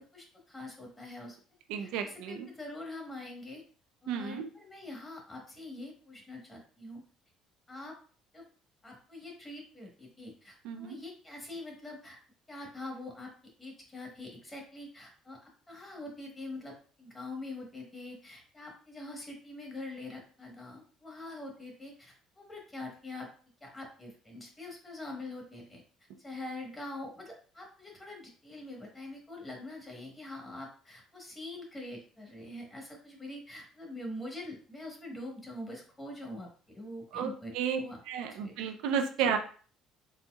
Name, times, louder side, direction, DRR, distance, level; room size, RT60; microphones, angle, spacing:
voice 1, 0.0-1.4 1.8-3.6 4.0-7.0 7.7-7.9 8.3-8.4 8.8-12.2 12.5-13.3 13.6-23.3 23.6-25.8 26.2-38.0 38.3-38.5 39.2-39.3, left 2 dB, 20° left, 0 dB, 1.2 m, -44 dB
voice 2, 1.7-2.5 4.1-4.5 10.6-11.0 37.1-37.8 38.1-39.4, right 7 dB, 85° right, 6 dB, 0.4 m, -32 dB
4.1 x 2.7 x 2.3 m, 0.42 s
cardioid pair, 115°, 0 cm